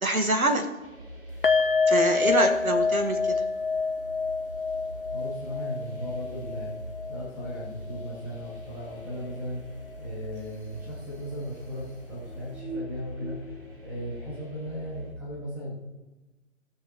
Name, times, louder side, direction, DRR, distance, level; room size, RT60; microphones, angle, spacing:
voice 1, 0.0-0.7 1.9-3.4, right 1 dB, 90° right, 5 dB, 1.8 m, -25 dB
sound 1, 0.8-15.1, equal, 40° right, 2.5 m, -43 dB
sound 2, 1.4-8.6 8.9-9.1 9.5-9.6, left 4 dB, 45° left, 0.5 m, -27 dB
voice 2, 5.1-6.7 7.1-9.6 10.0-15.8, equal, 5° right, -6 dB, 1.0 m, -37 dB
18.0 x 6.6 x 3.1 m, 1.1 s
figure-of-eight pair, 155°, 41 cm